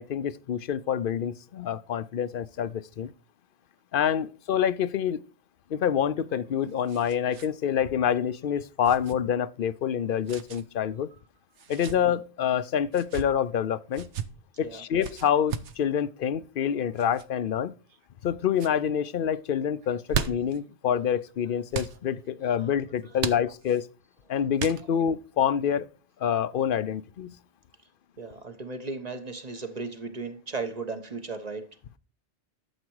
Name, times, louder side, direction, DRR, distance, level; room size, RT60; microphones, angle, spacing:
voice 1, 0.0-3.1 3.9-5.2 5.7-11.1 11.7-14.1 14.6-17.7 18.2-23.9 24.3-25.9 26.2-27.3, left 8 dB, 55° left, 0.7 m, -27 dB
sound 1, 6.2-7.5 7.8-7.9 8.8-9.1 10.3-10.6 11.5-12.0 12.9-13.3 13.9-14.3 15.0-15.8 17.0-17.3 17.9-18.3 18.5-18.8 19.8-20.6 21.7-22.0 23.2-23.8 24.6-25.1, right 7 dB, 90° right, 1.2 m, -35 dB
voice 2, 28.2-31.7, right 3 dB, 35° right, 1.3 m, -36 dB
12.0 x 7.4 x 4.7 m
omnidirectional pair, 1.2 m